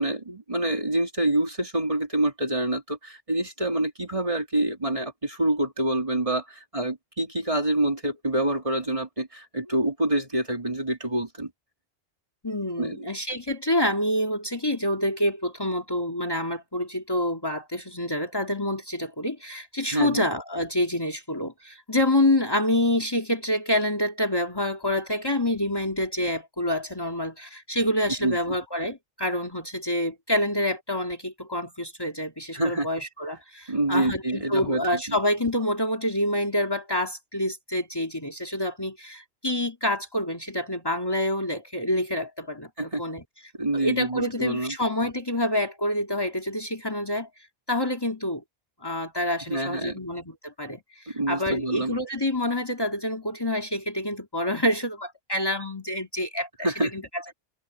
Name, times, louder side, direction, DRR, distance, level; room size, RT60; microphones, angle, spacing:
voice 1, 0.0-11.5 12.8-13.0 19.9-20.2 28.2-28.4 32.5-32.9 33.7-35.2 42.8-43.0 43.6-44.7 49.5-50.0 51.1-51.9 56.6-56.9, right 1 dB, 30° right, 3.1 m, -26 dB
voice 2, 12.4-43.2 43.7-47.3 47.7-48.4 48.8-56.7 56.9-57.3, left 1 dB, 20° left, 2.5 m, -27 dB
omnidirectional pair, 1.2 m